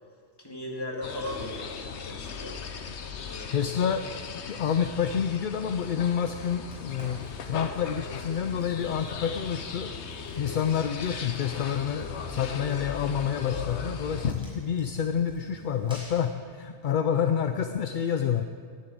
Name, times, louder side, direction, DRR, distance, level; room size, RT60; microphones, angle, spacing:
voice 1, 0.4-2.6 3.2-3.9, left 1 dB, 20° left, -2 dB, 2.1 m, -38 dB
sound 1, 1.0-14.3, left 6 dB, 75° left, 1.1 m, -37 dB
voice 2, 3.5-4.0 4.3-9.9 10.4-18.4, left 8 dB, 55° left, 8 dB, 0.6 m, -28 dB
Fire, 6.7-16.3, equal, 5° right, 4.7 m, -50 dB
11.0 x 9.9 x 8.5 m, 2.1 s
omnidirectional pair, 1.2 m